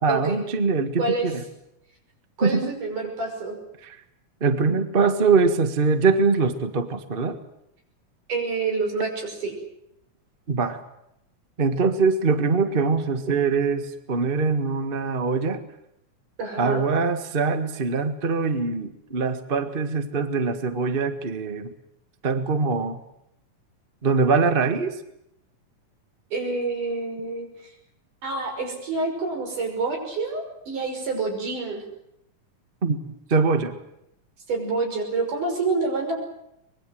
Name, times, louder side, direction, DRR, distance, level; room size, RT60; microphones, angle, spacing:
voice 1, 0.0-1.4 2.4-2.7 3.8-3.9 4.4-7.4 10.5-10.8 11.6-15.6 16.6-21.7 22.2-23.0 24.0-25.0 32.8-33.8, right 4 dB, 30° right, 8 dB, 1.1 m, -23 dB
voice 2, 2.4-3.6 8.3-9.5 16.4-16.9 26.3-27.7 28.2-31.8 34.5-36.2, right 3 dB, 85° right, 3 dB, 7.3 m, -27 dB
24.5 x 21.5 x 7.8 m, 0.80 s
omnidirectional pair, 3.5 m